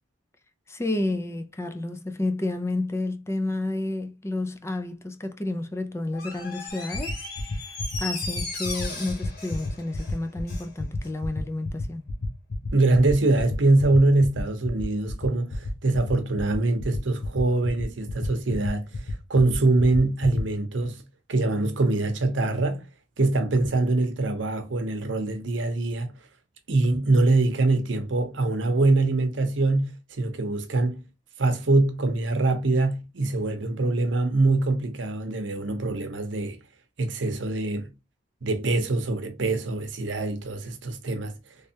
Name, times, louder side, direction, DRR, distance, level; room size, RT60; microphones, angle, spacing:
voice 1, 0.7-7.3 7.7-12.0, left 2 dB, 15° left, 0.4 m, -30 dB
Door, 6.1-10.7 11.0-11.1, left 3 dB, 55° left, 1.7 m, -36 dB
sound 1, 6.7-20.4, left 4 dB, 80° left, 0.9 m, -32 dB
voice 2, 12.7-19.0 19.3-21.0 21.3-22.9 23.2-26.1 26.7-31.0 31.4-36.6 37.0-37.9 38.4-41.3, right 2 dB, 75° right, 0.8 m, -23 dB
3.3 x 3.2 x 2.8 m
head